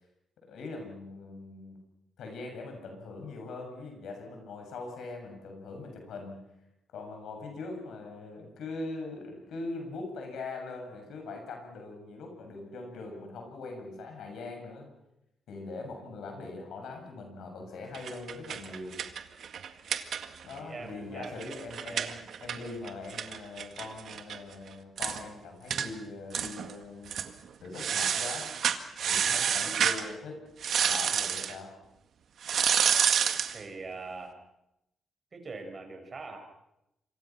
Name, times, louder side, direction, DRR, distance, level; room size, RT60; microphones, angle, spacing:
voice 1, 0.4-1.8 2.2-6.4 6.9-14.9 15.5-19.0 20.4-27.2 27.6-28.5 29.0-30.4 30.8-31.8, left 3 dB, 80° left, 3 dB, 7.4 m, -41 dB
sound 1, 17.9-20.6 20.9-21.0 21.2-24.4 24.7-24.8 25.0-25.2 25.7-25.9 26.3-26.7 27.1-27.3 27.8-30.0 30.6-31.5 32.4-33.6, right 8 dB, 70° right, 1.8 m, -29 dB
voice 2, 20.2-21.6 21.9-22.1 33.5-34.4 35.3-36.4, right 3 dB, 40° right, 5 dB, 6.4 m, -42 dB
27.0 x 24.5 x 6.0 m, 0.88 s
cardioid pair, 80°, 0 cm